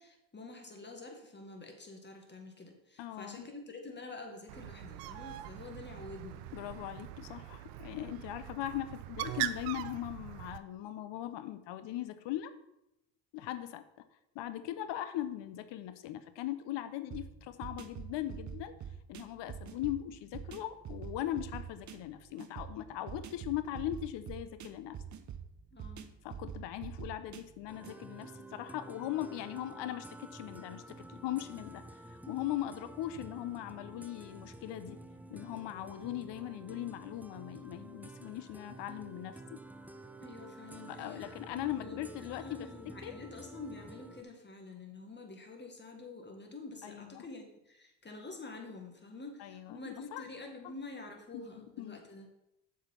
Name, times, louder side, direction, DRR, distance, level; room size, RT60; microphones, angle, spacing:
voice 1, 0.0-6.5 25.7-26.1 40.2-52.3, left 3 dB, 25° left, 3 dB, 1.9 m, -48 dB
voice 2, 3.0-3.5 6.5-12.5 13.3-14.1 14.3-18.7 19.1-25.0 26.2-31.8 32.1-35.0 35.3-39.6 40.9-43.1 46.8-47.3 49.4-49.8 50.1-50.2 50.6-50.7 51.3-52.0, left 13 dB, 65° left, 12 dB, 0.8 m, -39 dB
Bird, 4.5-10.6, right 14 dB, 85° right, 0.6 m, -41 dB
sound 1, 17.1-28.0, right 8 dB, 40° right, 0.8 m, -46 dB
sound 2, 27.7-44.2, right 2 dB, 5° right, 0.5 m, -50 dB
7.1 x 5.0 x 5.7 m, 0.86 s
hypercardioid pair, 60°, 46 cm